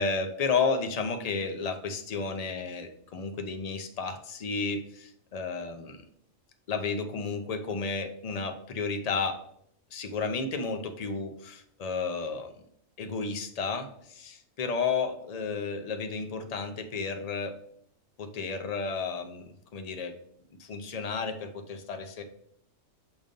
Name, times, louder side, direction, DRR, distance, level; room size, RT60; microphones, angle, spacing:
voice 1, 0.0-6.0 6.7-9.4 9.9-12.5 13.0-17.6 18.2-19.5 19.7-20.1 20.6-22.2, left 4 dB, 50° left, 6 dB, 0.4 m, -32 dB
7.0 x 2.6 x 5.1 m, 0.71 s
omnidirectional pair, 1.4 m